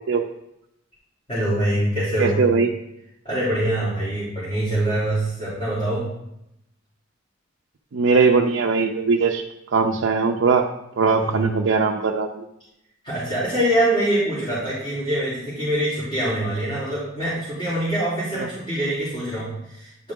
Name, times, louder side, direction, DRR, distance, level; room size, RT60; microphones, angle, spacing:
voice 1, 1.3-2.4 3.2-6.1 11.1-11.5 13.0-20.1, right 1 dB, 30° left, -11 dB, 3.2 m, -24 dB
voice 2, 2.2-2.7 7.9-9.4 9.7-10.6 11.0-12.4 18.3-18.5, right 4 dB, 70° right, 1 dB, 0.5 m, -20 dB
9.7 x 4.9 x 3.6 m, 0.83 s
head